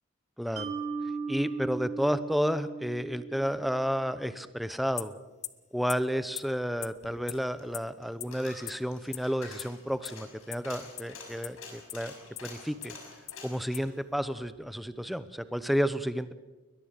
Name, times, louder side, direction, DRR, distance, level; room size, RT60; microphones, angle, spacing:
voice 1, 0.4-0.7 1.3-5.1 5.7-12.1 12.4-12.9 13.4-16.3, equal, ahead, 12 dB, 0.8 m, -31 dB
Mallet percussion, 0.6-3.8, right 4 dB, 35° right, 2.9 m, -37 dB
sound 1, 5.0-5.1 5.4-5.5 5.9-6.0 6.4-6.5 6.8-6.9 7.3-7.4 7.7-7.8 8.2-8.3 8.7-8.8 9.1-9.2 9.6-9.7 10.0-10.1 10.5-10.6 11.0-11.1 11.4-11.5 11.9-12.0 12.4-12.5 12.8-12.9 13.3-13.4 13.7-13.8, left 12 dB, 35° left, 0.7 m, -36 dB
Coin (dropping), 7.0-15.2 15.6-15.7, left 4 dB, 90° left, 6.5 m, -49 dB
21.5 x 21.0 x 6.7 m, 1.2 s
head